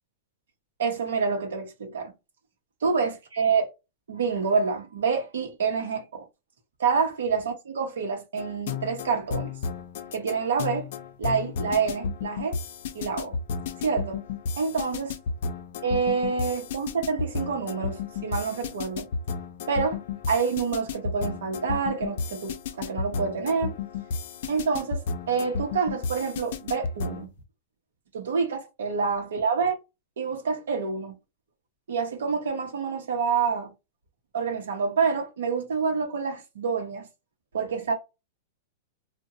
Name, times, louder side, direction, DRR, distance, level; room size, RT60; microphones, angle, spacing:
voice 1, 0.8-2.1 2.8-3.7 4.1-6.3 6.8-9.5 10.1-10.9 11.2-12.6 12.9-13.4 13.8-14.2 14.6-15.1 15.8-19.1 19.7-20.0 20.3-23.7 24.5-27.3 28.1-29.8 30.2-31.1 31.9-33.7 34.3-37.1 37.5-37.9, right 5 dB, 90° right, 0.7 m, -27 dB
sound 1, 8.4-27.3, left 5 dB, 65° left, 0.5 m, -33 dB
2.7 x 2.1 x 2.5 m
hypercardioid pair, 135°, 0 cm